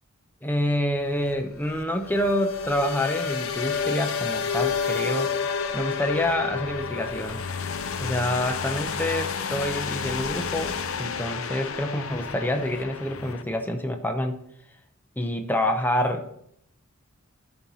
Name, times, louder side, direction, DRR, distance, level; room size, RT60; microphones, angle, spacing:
voice 1, 0.4-5.3 5.7-7.4 8.0-14.4 15.2-16.5, left 1 dB, 10° left, 5 dB, 0.7 m, -27 dB
sound 1, 1.0-13.4, left 6 dB, 75° left, 0.7 m, -30 dB
11.5 x 4.4 x 5.4 m, 0.72 s
head